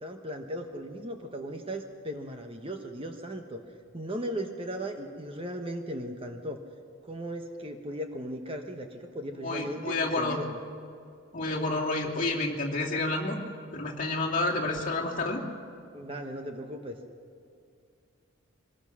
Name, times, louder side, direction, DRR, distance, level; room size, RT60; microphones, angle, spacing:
voice 1, 0.0-3.6 3.9-6.6 7.0-10.6 15.9-17.0, equal, 25° right, 5 dB, 1.1 m, -37 dB
voice 2, 9.4-10.4 11.3-13.4 13.7-15.4, left 2 dB, 40° left, -2 dB, 2.7 m, -29 dB
23.5 x 20.5 x 6.2 m, 2.4 s
head